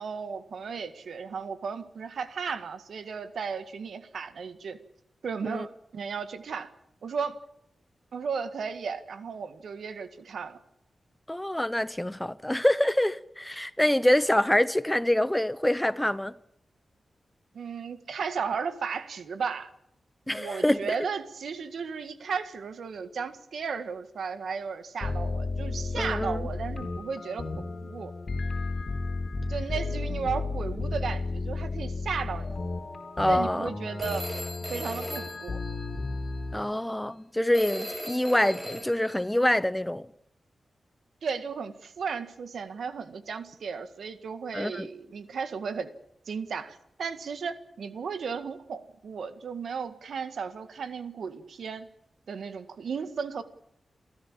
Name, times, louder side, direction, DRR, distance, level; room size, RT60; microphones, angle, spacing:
voice 1, 0.0-4.8 5.2-6.7 7.0-7.4 8.1-10.6 17.5-19.7 20.3-28.1 29.5-32.6 33.3-34.3 34.7-35.6 41.2-45.9 46.3-51.9 52.3-53.4, right 6 dB, 85° right, 1.8 m, -35 dB
voice 2, 11.3-16.3 20.3-21.0 26.0-26.4 33.2-33.7 36.5-40.0 44.5-44.9, left 1 dB, 10° left, 0.8 m, -25 dB
sound 1, 25.0-36.6, left 3 dB, 50° left, 3.9 m, -33 dB
Telephone, 34.0-36.3 37.5-39.3, equal, 10° right, 6.0 m, -38 dB
28.5 x 14.0 x 7.5 m
wide cardioid pair, 95°, 0 cm